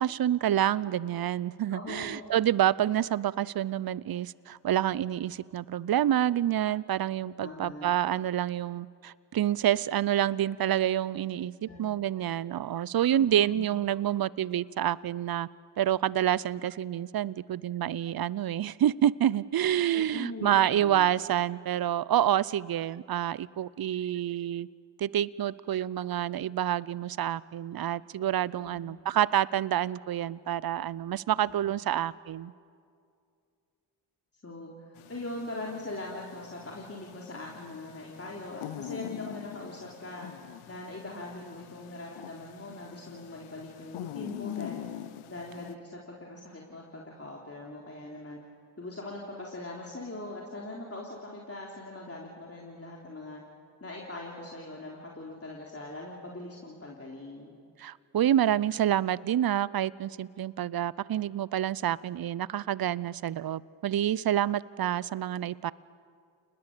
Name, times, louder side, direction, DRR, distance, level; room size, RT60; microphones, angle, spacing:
voice 1, 0.0-15.5 15.8-24.7 25.0-32.5 57.8-65.7, right 11 dB, 50° right, 21 dB, 0.7 m, -28 dB
voice 2, 1.7-2.4 7.4-7.9 11.7-11.8 13.2-13.6 19.9-21.1 28.6-28.8 31.6-31.7 34.4-40.3 40.7-44.9 45.3-48.4 48.8-53.4 53.8-57.5, left 2 dB, 30° left, -2 dB, 3.7 m, -41 dB
sound 1, 35.0-45.8, left 13 dB, 85° left, 0.9 m, -44 dB
29.5 x 20.0 x 6.9 m, 2.4 s
supercardioid pair, 45°, 48 cm